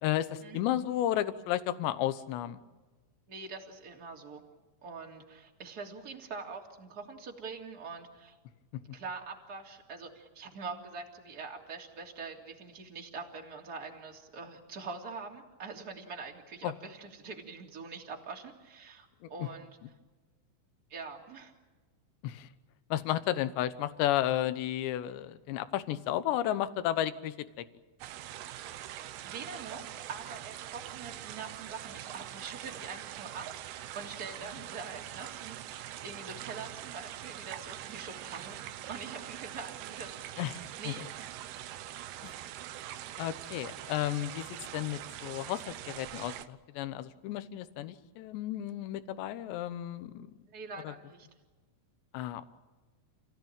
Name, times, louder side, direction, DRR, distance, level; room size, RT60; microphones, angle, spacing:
voice 1, 0.0-2.6 16.6-16.7 19.4-19.5 22.2-22.5 22.9-27.7 40.4-41.1 42.2-42.3 43.2-44.5 44.7-50.3 50.8-50.9 52.1-52.5, left 13 dB, 75° left, 13 dB, 3.1 m, -33 dB
voice 2, 3.3-4.4 4.8-8.4 8.9-19.8 20.9-21.5 29.2-38.6 38.9-40.4 40.8-41.3 50.5-51.3, right 4 dB, 25° right, 0 dB, 2.9 m, -44 dB
sound 1, 28.0-46.5, right 12 dB, 75° right, 2.5 m, -43 dB
30.0 x 16.5 x 9.0 m, 1.3 s
omnidirectional pair, 5.4 m